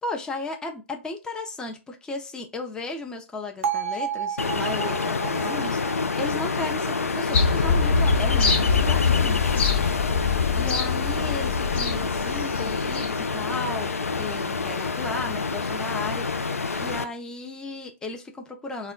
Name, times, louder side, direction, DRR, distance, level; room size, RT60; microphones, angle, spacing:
voice 1, 0.0-9.5 10.6-16.5 16.8-18.9, left 3 dB, 10° left, 3 dB, 0.5 m, -35 dB
Bell, 3.6-7.7, right 7 dB, 65° right, 0.5 m, -32 dB
Ocean, 4.4-17.0, left 4 dB, 90° left, 0.4 m, -28 dB
sound 1, 7.3-13.2 13.5-13.6, left 5 dB, 55° left, 1.2 m, -24 dB
2.2 x 2.0 x 3.7 m, 0.29 s
figure-of-eight pair, 120°, 8 cm